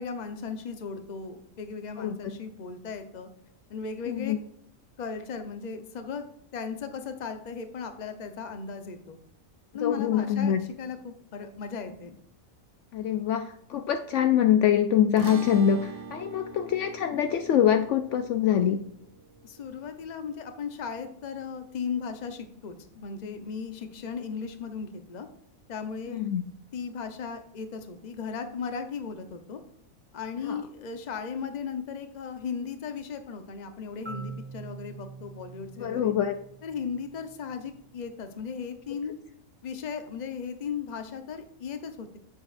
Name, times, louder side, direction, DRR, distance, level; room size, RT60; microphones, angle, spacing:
voice 1, 0.0-3.3 3.7-4.3 5.0-6.2 6.5-9.2 9.7-12.2 19.4-25.3 25.7-26.2 26.7-29.6 30.1-36.1 36.6-39.1 39.6-42.2, left 6 dB, 40° left, 8 dB, 0.8 m, -36 dB
voice 2, 2.0-2.4 4.1-4.4 9.8-10.6 12.9-18.8 26.1-26.4 30.5-30.6 35.8-36.3, left 9 dB, 70° left, 8 dB, 0.8 m, -24 dB
sound 1, 15.2-21.7, right 5 dB, 65° right, 1.1 m, -44 dB
Marimba xylophone, 34.0-37.9, right 4 dB, 20° right, 0.3 m, -44 dB
8.2 x 7.0 x 2.5 m, 0.70 s
omnidirectional pair, 1.4 m